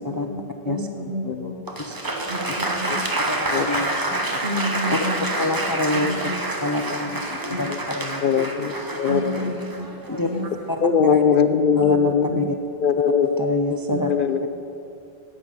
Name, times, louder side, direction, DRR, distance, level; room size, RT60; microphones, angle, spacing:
voice 1, 0.0-3.0 4.4-5.6 5.9-6.7 7.0-7.2 7.5-7.6 9.1-9.9 10.1-10.4 10.9-11.0 11.7-12.4 13.9-14.1, equal, 65° right, -1 dB, 2.1 m, -31 dB
voice 2, 1.0-1.5 2.6-2.7 3.5-3.7 5.4-5.5 7.5-7.8 8.2-9.5 10.8-12.5 12.8-13.4 13.7-13.8 14.1-14.4, left 7 dB, 60° left, 10 dB, 0.7 m, -21 dB
Applause, 1.7-10.6, right 2 dB, 20° right, 0.8 m, -28 dB
voice 3, 3.3-4.0 4.9-5.0 5.4-6.1 6.6-7.2 7.6-8.2 10.1-10.3 10.7-11.2 11.8-12.4 13.4-14.1, left 2 dB, 30° left, 5 dB, 0.4 m, -26 dB
9.5 x 8.2 x 8.9 m, 2.8 s
omnidirectional pair, 1.1 m